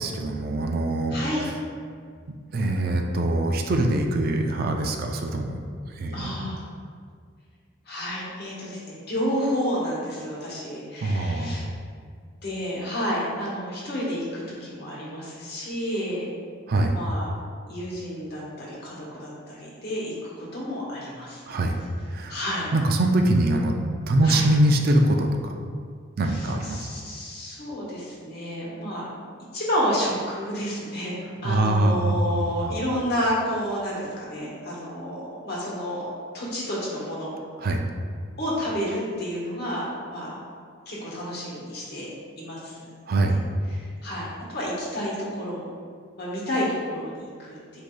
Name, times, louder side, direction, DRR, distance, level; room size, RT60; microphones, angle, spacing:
voice 1, 0.0-1.5 2.5-5.6 6.0-6.5 11.0-11.7 16.7-16.9 21.5-21.8 22.1-22.3 22.7-23.7 24.1-25.5 26.2-26.9 31.4-32.8 37.6-37.8 43.1-43.4, right 1 dB, 50° right, 3 dB, 0.4 m, -23 dB
voice 2, 1.1-1.4 6.1-6.6 7.9-11.6 12.4-16.3 16.9-17.3 17.7-21.4 22.3-22.7 24.2-24.4 26.3-29.1 29.5-31.1 31.4-36.0 36.3-37.3 38.4-40.4 40.9-42.1 42.4-42.8 43.3-43.4 43.7-44.3 44.5-45.6 46.2-47.8, equal, 55° left, -5 dB, 1.2 m, -30 dB
7.7 x 2.7 x 2.2 m, 2.1 s
head